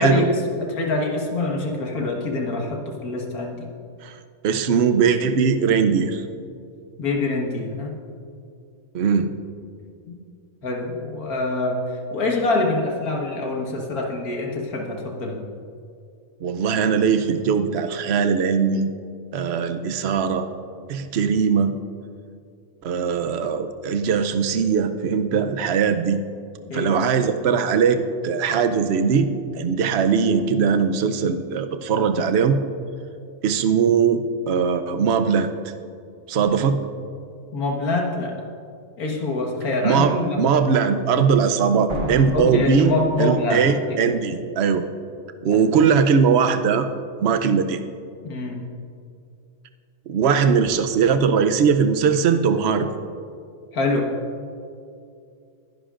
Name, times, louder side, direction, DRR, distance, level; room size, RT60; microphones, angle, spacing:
voice 1, 0.0-3.7 7.0-8.0 10.1-10.2 10.6-11.8 12.1-15.4 26.7-27.0 37.5-38.4 39.0-40.4 42.3-44.1 45.5-45.7 48.2-48.7 53.7-54.1, left 2 dB, 85° left, 0 dB, 2.0 m, -25 dB
voice 2, 4.4-6.2 8.9-9.3 16.4-18.9 19.3-20.5 20.9-21.7 22.8-26.2 26.7-29.3 29.5-32.6 33.4-35.5 36.3-36.8 39.8-42.9 43.2-44.9 45.4-46.9 47.2-47.8 50.1-52.9, right 6 dB, 55° right, 8 dB, 0.8 m, -20 dB
sound 1, 41.9-43.7, right 1 dB, 35° right, 1.2 m, -31 dB
21.5 x 11.0 x 2.5 m, 2.5 s
omnidirectional pair, 1.5 m